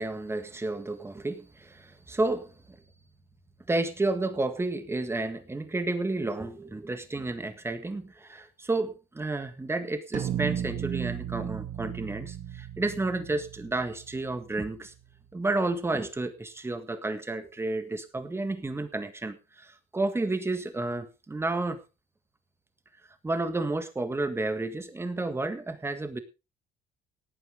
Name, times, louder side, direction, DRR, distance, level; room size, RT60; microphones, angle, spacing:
voice 1, 0.0-2.8 3.7-14.9 15.3-21.8 23.2-26.2, right 2 dB, 15° right, 9 dB, 1.8 m, -31 dB
sound 1, 10.1-14.7, right 10 dB, 50° right, 1.9 m, -35 dB
18.0 x 9.3 x 3.7 m, 0.28 s
cardioid pair, 110°, 17 cm